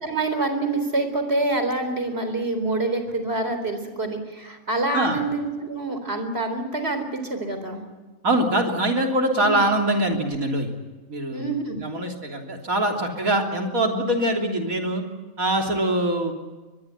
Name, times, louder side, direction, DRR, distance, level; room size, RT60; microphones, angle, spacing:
voice 1, 0.0-7.8 9.4-9.6 11.3-11.8, right 2 dB, 45° right, 8 dB, 4.2 m, -26 dB
voice 2, 8.2-10.7 11.1-11.4 11.7-15.0 15.4-16.3, right 1 dB, 90° right, 2 dB, 3.8 m, -23 dB
23.0 x 21.5 x 9.6 m, 1.2 s
omnidirectional pair, 1.4 m